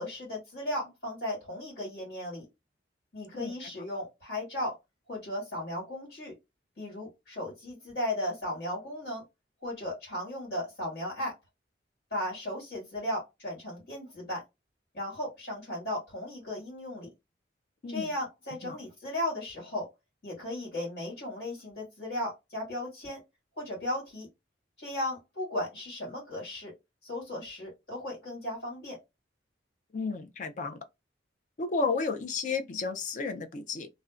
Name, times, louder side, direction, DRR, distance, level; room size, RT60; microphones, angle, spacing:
voice 1, 0.0-2.4 3.1-4.7 5.1-6.3 6.8-9.2 9.6-11.3 12.1-14.4 14.9-17.1 17.9-19.9 20.2-23.2 23.6-24.3 24.8-26.7 27.0-29.0, left 1 dB, 65° left, 1.5 m, -36 dB
voice 2, 3.3-3.7 17.8-18.1 18.6-18.8 29.9-30.8 31.6-33.9, left 4 dB, 40° left, 0.4 m, -32 dB
2.5 x 2.1 x 2.3 m
head